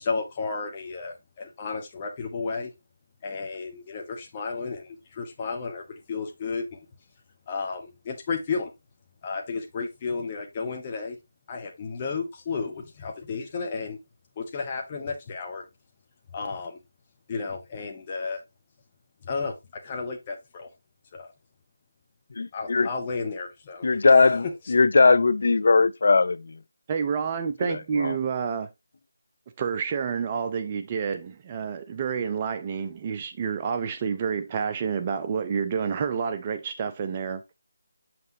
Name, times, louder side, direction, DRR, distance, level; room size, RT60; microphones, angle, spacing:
voice 1, 0.0-2.7 3.2-6.9 7.5-8.7 9.2-11.2 11.5-14.0 14.4-15.6 16.3-16.8 17.3-18.4 19.2-20.7 21.1-21.3 22.5-23.9 24.2-24.3 24.6-24.7, left 4 dB, 30° left, 1.2 m, -33 dB
voice 2, 22.4-22.9 23.8-26.5 27.7-28.2, left 4 dB, 55° left, 0.5 m, -20 dB
voice 3, 26.9-28.7 29.6-37.4, right 6 dB, 25° right, 0.6 m, -29 dB
7.3 x 6.0 x 2.7 m
figure-of-eight pair, 160°, 0 cm